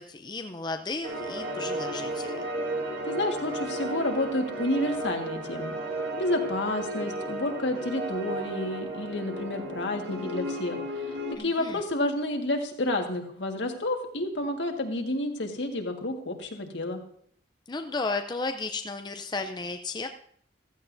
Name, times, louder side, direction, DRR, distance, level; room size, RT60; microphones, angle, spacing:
voice 1, 0.0-2.4 11.4-11.8 17.7-20.1, left 3 dB, 25° left, 6 dB, 0.5 m, -34 dB
horror music for space film its like Alien by kris klavenes, 1.0-11.3, right 1 dB, 70° right, 1.7 m, -34 dB
voice 2, 3.0-5.7 6.2-17.0, left 1 dB, 70° left, 3 dB, 1.7 m, -30 dB
15.5 x 14.0 x 2.7 m, 0.63 s
head